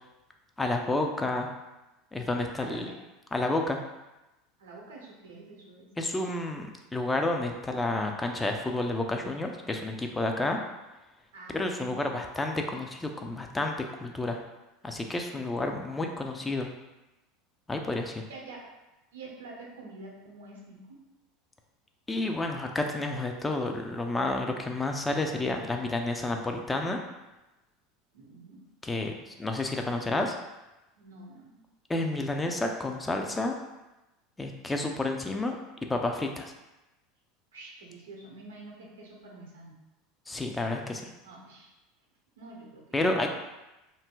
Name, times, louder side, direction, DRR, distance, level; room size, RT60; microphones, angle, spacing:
voice 1, 0.6-1.5 2.1-2.9 3.3-3.8 6.0-10.6 11.5-14.4 14.8-16.7 17.7-18.3 22.1-27.0 28.8-30.3 31.9-33.6 34.4-35.6 35.9-36.5 40.3-41.1 42.9-43.3, left 2 dB, 15° left, 3 dB, 0.4 m, -30 dB
voice 2, 2.6-3.0 4.6-5.9 11.3-12.2 15.5-15.6 18.3-18.7 19.1-21.0 28.1-28.7 31.0-31.6 37.5-39.8 41.2-41.7 42.4-43.3, right 2 dB, 80° right, -2 dB, 0.7 m, -47 dB
2.6 x 2.1 x 3.6 m, 1.0 s
hypercardioid pair, 85°, 0 cm